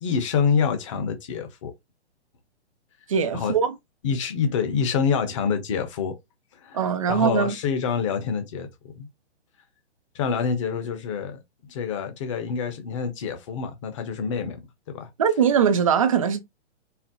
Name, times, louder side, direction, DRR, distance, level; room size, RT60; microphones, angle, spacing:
voice 1, 0.0-1.7 3.3-3.5 4.0-6.1 6.5-8.7 8.9-9.1 10.1-14.6 14.9-15.1, left 6 dB, 25° left, 0.9 m, -26 dB
voice 2, 3.1-3.7 6.7-7.6 15.2-16.4, right 7 dB, 30° right, 0.5 m, -21 dB
4.5 x 2.0 x 3.7 m
hypercardioid pair, 170°, 34 cm